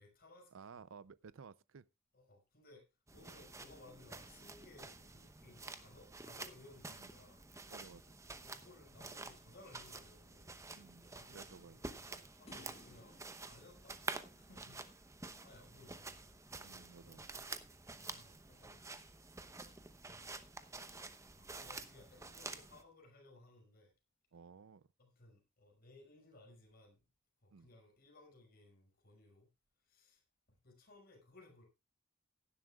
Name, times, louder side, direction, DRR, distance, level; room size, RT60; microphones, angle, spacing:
voice 1, 0.0-0.8 2.1-7.5 8.4-10.5 11.0-13.2 13.4-14.0 14.4-17.4 18.0-18.9 20.1-20.4 20.6-21.0 21.3-23.9 25.0-27.0 27.4-29.5 29.8-30.2 30.5-31.6, left 2 dB, 50° left, 5.9 m, -61 dB
voice 2, 0.5-1.9 3.3-3.4 6.9-7.1 7.7-8.1 10.7-11.8 14.7-14.8 16.6-17.4 18.1-18.2 24.3-24.9 27.5-27.7, right 5 dB, 75° right, 0.5 m, -56 dB
sound 1, 3.1-22.8, right 3 dB, 15° right, 0.9 m, -50 dB
sound 2, 12.5-14.9, left 2 dB, 30° left, 1.2 m, -61 dB
17.0 x 11.5 x 2.4 m
head